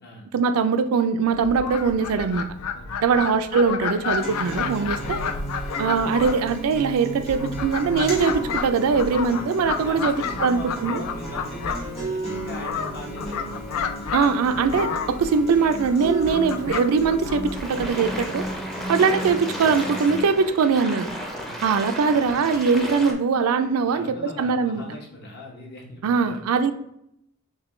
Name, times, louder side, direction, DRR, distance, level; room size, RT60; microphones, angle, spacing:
voice 1, 0.3-2.4 3.0-5.2 5.8-11.0 14.1-18.5 18.9-21.1 21.6-24.8 26.0-26.7, right 5 dB, 80° right, 10 dB, 0.4 m, -22 dB
Fowl, 1.3-18.6, left 6 dB, 80° left, 0.4 m, -31 dB
voice 2, 2.7-3.2 4.8-5.3 9.7-13.7 18.8-19.0 21.4-21.6 23.9-26.4, left 1 dB, 50° left, -1 dB, 1.0 m, -40 dB
Acoustic guitar, 4.2-20.2, right 1 dB, 25° left, 1.1 m, -34 dB
sound 1, 17.5-23.1, equal, ahead, 0.5 m, -34 dB
6.0 x 2.2 x 3.1 m, 0.78 s
head